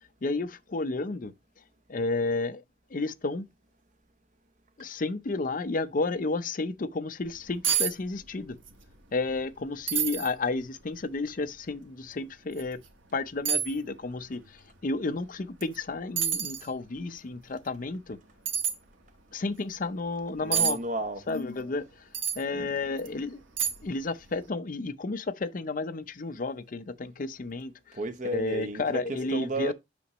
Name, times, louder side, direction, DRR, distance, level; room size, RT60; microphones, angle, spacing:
voice 1, 0.2-1.3 1.9-2.6 2.9-3.5 4.8-8.6 9.1-12.8 13.1-18.2 19.3-20.8 21.3-22.1 22.3-23.4 23.8-28.0 28.3-29.7, left 3 dB, 45° left, 0.5 m, -32 dB
sound 1, 7.3-7.4 7.6-7.9 8.2-8.8 9.1-9.2 9.9-10.3 10.9-11.0 12.5-12.7 13.5-13.7 15.6-15.8 16.2-16.7 18.5-18.8 20.5-20.8 22.1-22.4 23.0-23.1 23.6-24.0 24.3-24.4, right 8 dB, 85° right, 1.2 m, -27 dB
voice 2, 20.4-21.2 22.5-22.8 27.9-29.7, right 1 dB, 40° right, 0.8 m, -33 dB
8.2 x 6.0 x 3.0 m
head